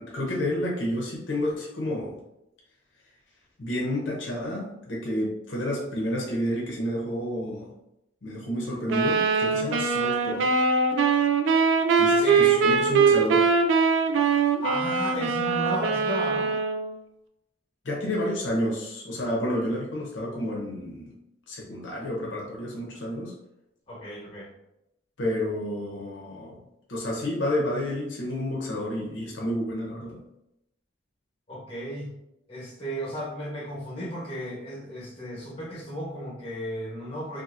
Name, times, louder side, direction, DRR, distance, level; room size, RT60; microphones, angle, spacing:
voice 1, 0.0-2.2 3.6-7.7 8.2-10.5 12.0-13.4 17.8-21.1 21.5-23.3 25.2-26.6 26.9-30.2, left 1 dB, 80° left, -2 dB, 0.7 m, -30 dB
sound 1, 8.9-16.9, right 5 dB, 90° right, 0.4 m, -22 dB
voice 2, 12.2-12.8 14.6-16.5 23.9-24.5 31.5-32.2 32.5-37.4, equal, 30° left, -6 dB, 1.0 m, -34 dB
2.7 x 2.5 x 2.5 m, 0.84 s
head